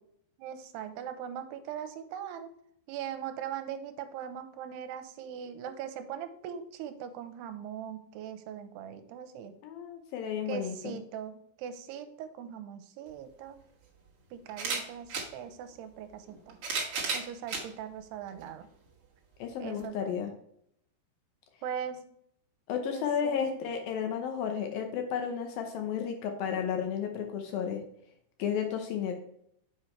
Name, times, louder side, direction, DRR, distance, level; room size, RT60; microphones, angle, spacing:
voice 1, 0.4-2.5 2.9-9.5 10.5-13.6 14.3-16.6 17.1-18.7 19.6-20.1 21.6-22.0 22.9-23.6, right 9 dB, 90° right, 10 dB, 2.7 m, -40 dB
voice 2, 9.6-11.0 19.4-20.3 22.7-27.8 28.4-29.2, left 7 dB, 75° left, 4 dB, 2.4 m, -33 dB
camera taking a picture, 13.1-13.2 14.5-15.3 16.3-17.7 18.4-18.5 19.8-19.9, right 4 dB, 65° right, 1.4 m, -33 dB
7.1 x 5.1 x 4.4 m, 0.70 s
omnidirectional pair, 4.7 m